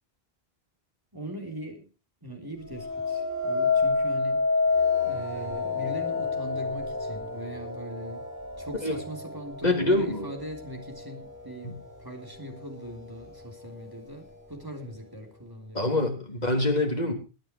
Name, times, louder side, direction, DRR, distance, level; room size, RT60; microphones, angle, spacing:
voice 1, 1.1-1.9 2.2-4.4 5.0-8.3 8.6-11.7 12.0-16.1, equal, 20° right, 2 dB, 3.8 m, -40 dB
sound 1, 2.7-11.8 12.4-12.8, left 4 dB, 55° right, 7.8 m, -29 dB
voice 2, 9.6-10.3 11.6-11.7 15.7-17.1, left 2 dB, 40° left, 2 dB, 3.6 m, -25 dB
22.0 x 9.0 x 4.6 m, 0.33 s
omnidirectional pair, 1.0 m